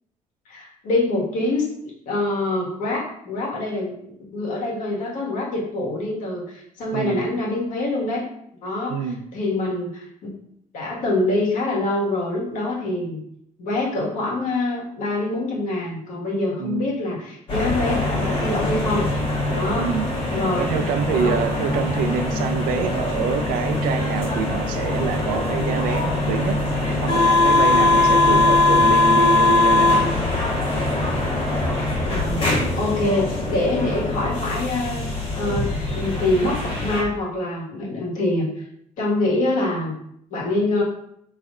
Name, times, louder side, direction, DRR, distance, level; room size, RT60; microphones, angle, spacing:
voice 1, 0.5-1.6 2.0-3.9 4.3-8.2 8.6-10.1 10.7-13.2 13.6-19.1 19.5-19.9 20.3-20.6 21.0-21.4 32.1-35.0 35.3-38.7 39.0-40.0 40.3-40.8, left 2 dB, 65° left, -4 dB, 1.5 m, -25 dB
voice 2, 6.9-7.2 8.9-9.2 16.6-16.9 19.7-20.1 20.6-26.6 27.0-30.1 32.6-32.7, right 6 dB, 90° right, 8 dB, 0.4 m, -26 dB
sound 1, 17.5-37.0, left 2 dB, 40° left, 1.2 m, -21 dB
5.3 x 3.2 x 2.4 m, 0.73 s
cardioid pair, 165°, 14 cm